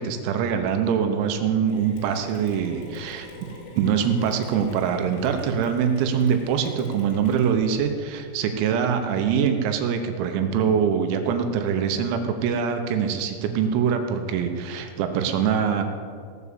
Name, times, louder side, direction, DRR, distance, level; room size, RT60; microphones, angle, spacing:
voice 1, 0.0-3.3 3.8-15.8, right 7 dB, 85° right, 6 dB, 3.7 m, -24 dB
Mechanisms, 1.7-7.9, left 3 dB, 90° left, 5.7 m, -43 dB
18.0 x 7.2 x 8.4 m, 2.1 s
omnidirectional pair, 6.0 m